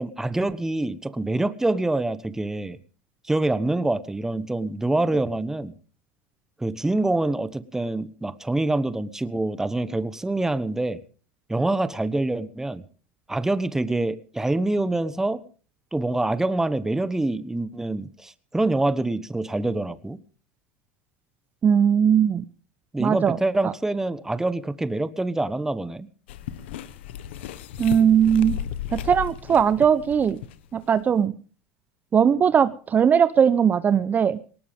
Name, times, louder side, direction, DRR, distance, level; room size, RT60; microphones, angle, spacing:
voice 1, 0.0-2.8 3.2-5.7 6.6-11.0 11.5-12.8 13.3-15.4 15.9-20.2 22.9-26.1, right 2 dB, 10° right, 15 dB, 1.2 m, -25 dB
voice 2, 21.6-22.4 23.0-23.4 23.6-23.7 27.8-28.6 28.9-30.4 30.7-31.3 32.1-34.4, right 8 dB, 30° right, 14 dB, 0.8 m, -19 dB
sound 1, 26.3-30.8 31.1-31.2, left 10 dB, 80° left, 1.4 m, -35 dB
19.0 x 19.0 x 3.6 m, 0.40 s
supercardioid pair, 100°, 6 cm